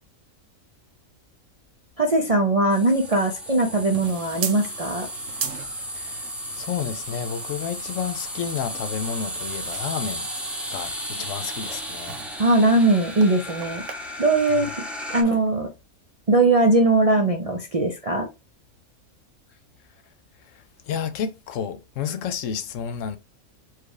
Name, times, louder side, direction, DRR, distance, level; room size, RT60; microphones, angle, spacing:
voice 1, 2.0-5.1 12.4-13.8 14.2-14.7 15.1-15.7 16.3-18.3, right 2 dB, 45° right, 0.4 m, -20 dB
sound 1, 2.7-15.2, equal, ahead, 0.7 m, -35 dB
sound 2, 3.0-13.9, right 7 dB, 65° right, 1.0 m, -39 dB
voice 2, 5.9-10.3 10.7-12.2 14.6-14.7 20.4-23.2, left 7 dB, 70° left, 0.9 m, -31 dB
4.7 x 2.3 x 4.8 m
omnidirectional pair, 1.5 m